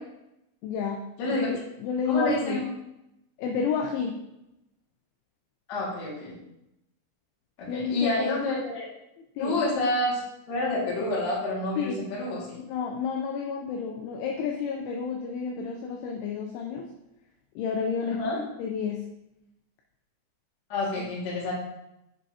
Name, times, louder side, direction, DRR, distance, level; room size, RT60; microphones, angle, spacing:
voice 1, 0.6-2.6 3.4-4.2 7.7-8.4 9.4-9.6 11.8-12.0 12.7-16.9 17.6-18.2 18.6-19.0, left 6 dB, 85° left, 1 dB, 2.8 m, -30 dB
voice 2, 1.2-1.5 2.1-2.6 5.7-6.4 7.6-8.9 9.4-10.2 10.5-12.6 18.0-18.4 20.7-21.5, left 2 dB, 55° left, -6 dB, 2.0 m, -28 dB
7.5 x 5.4 x 2.7 m, 0.87 s
omnidirectional pair, 6.0 m